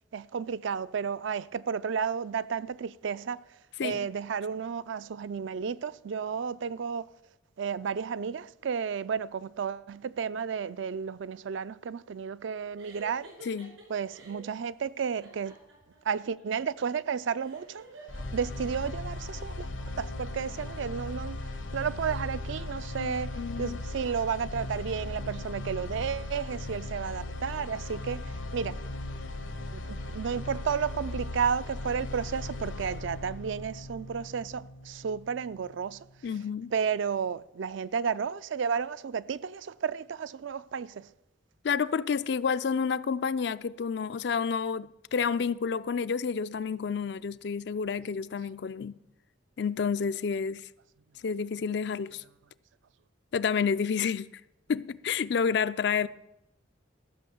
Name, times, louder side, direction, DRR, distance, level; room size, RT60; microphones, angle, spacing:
voice 1, 0.1-3.4 3.8-7.1 7.6-13.3 13.9-15.6 16.0-17.9 18.3-19.7 20.0-28.8 29.7-36.1 36.7-41.1, right 6 dB, 70° right, 0.4 m, -32 dB
sound 1, 12.8-14.5 15.2-18.8, right 2 dB, 90° right, 4.6 m, -50 dB
voice 2, 13.4-13.8 23.0-23.8 36.2-36.7 41.6-49.0 49.6-50.7 51.2-52.2 53.3-54.3 54.7-56.1, left 6 dB, 55° left, 0.4 m, -30 dB
sound 2, 18.1-36.1, left 2 dB, 75° left, 1.1 m, -38 dB
14.0 x 6.5 x 6.9 m
head